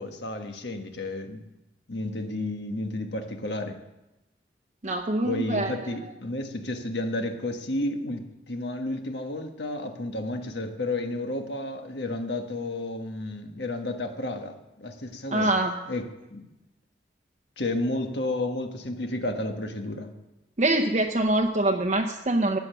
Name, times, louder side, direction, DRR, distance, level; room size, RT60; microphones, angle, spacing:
voice 1, 0.0-1.4 1.9-3.8 5.2-15.6 15.8-16.5 17.6-20.1, left 2 dB, 70° left, 5 dB, 1.5 m, -32 dB
voice 2, 4.8-5.7 15.3-15.7 20.6-22.6, right 2 dB, 40° right, 3 dB, 0.8 m, -24 dB
14.0 x 9.7 x 6.9 m, 0.96 s
head